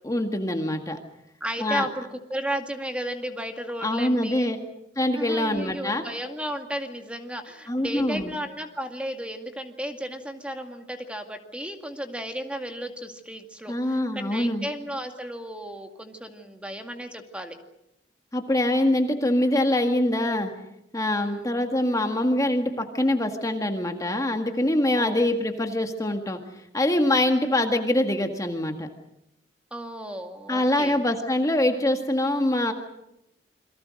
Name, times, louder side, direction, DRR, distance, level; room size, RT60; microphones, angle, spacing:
voice 1, 0.0-1.0 1.6-1.9 3.8-4.6 5.0-6.0 7.7-8.3 13.7-14.7 18.3-20.5 20.9-26.4 26.7-28.9 30.5-32.7, left 1 dB, 20° left, 4 dB, 1.8 m, -24 dB
voice 2, 1.4-4.6 5.1-17.6 21.2-21.5 25.0-25.2 29.7-31.0, equal, 5° right, 5 dB, 2.1 m, -34 dB
28.5 x 23.5 x 6.5 m, 0.84 s
head